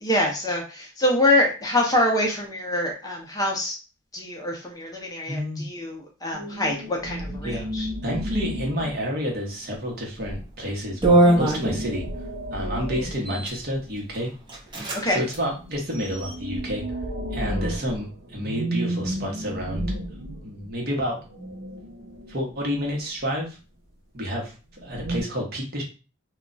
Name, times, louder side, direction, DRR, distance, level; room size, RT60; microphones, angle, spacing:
voice 1, 0.0-3.8 4.1-7.9 14.9-15.2, left 1 dB, 20° left, -1 dB, 0.6 m, -25 dB
voice 2, 5.3-5.6 7.4-7.7 8.0-12.0 12.5-14.3 15.0-16.8 17.3-20.0 20.4-21.2 22.3-23.6 24.1-25.8, equal, 50° right, 0 dB, 0.9 m, -29 dB
sound 1, 6.3-9.5 10.2-14.0 15.6-22.7 24.8-25.2, equal, 80° right, 0.7 m, -33 dB
sound 2, 10.2-10.4 11.0-12.2 13.1-13.6 14.1-14.2 14.5-15.0 15.3-15.4 15.9-16.6, right 1 dB, 25° right, 0.7 m, -22 dB
2.3 x 2.1 x 3.8 m, 0.33 s
head